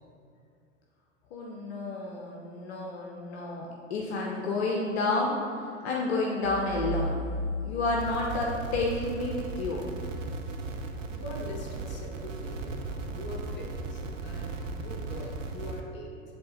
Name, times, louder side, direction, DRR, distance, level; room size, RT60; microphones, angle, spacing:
voice 1, 1.3-7.2 7.6-9.9, left 2 dB, 55° left, -2 dB, 0.8 m, -30 dB
sound 1, 6.4-9.3, equal, 35° right, 1.4 m, -34 dB
sound 2, 8.0-15.8, right 3 dB, 75° right, 0.7 m, -37 dB
voice 2, 11.1-16.1, left 2 dB, 30° left, -2 dB, 1.2 m, -42 dB
7.9 x 3.6 x 3.9 m, 2.4 s
figure-of-eight pair, 85°, 38 cm